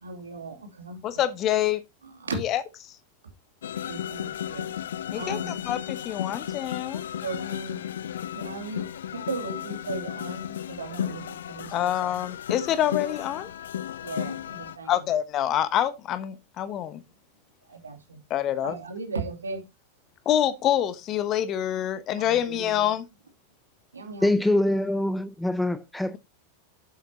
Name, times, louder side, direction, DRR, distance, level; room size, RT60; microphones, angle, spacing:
voice 1, 0.0-1.0 2.2-2.4 3.9-4.7 5.1-5.6 7.2-7.8 8.3-12.2 14.0-15.0 17.7-18.2 18.6-19.6 22.2-22.9 23.9-24.3, right 3 dB, 75° right, 2.8 m, -36 dB
voice 2, 1.0-1.8 2.3-2.6 5.1-7.0 11.7-13.5 14.9-17.0 18.3-18.8 20.2-23.1, left 11 dB, 35° left, 1.0 m, -26 dB
sound 1, 3.6-14.8, left 10 dB, 60° left, 0.4 m, -34 dB
voice 3, 24.2-26.2, left 1 dB, 5° left, 0.6 m, -24 dB
11.0 x 8.1 x 2.9 m
figure-of-eight pair, 90°, 0 cm